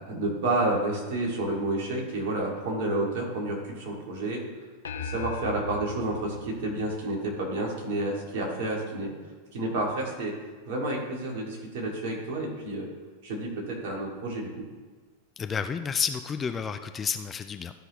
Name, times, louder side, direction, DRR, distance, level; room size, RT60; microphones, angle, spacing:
voice 1, 0.0-4.4 4.9-9.1 9.5-10.3 10.7-12.9 13.2-14.5, right 2 dB, 50° right, -2 dB, 2.2 m, -30 dB
sound 1, 4.8-7.5, left 4 dB, 65° left, 0.6 m, -39 dB
voice 2, 15.4-17.7, left 6 dB, 20° left, 9 dB, 0.4 m, -30 dB
13.0 x 5.5 x 3.0 m, 1.4 s
figure-of-eight pair, 90°, 0 cm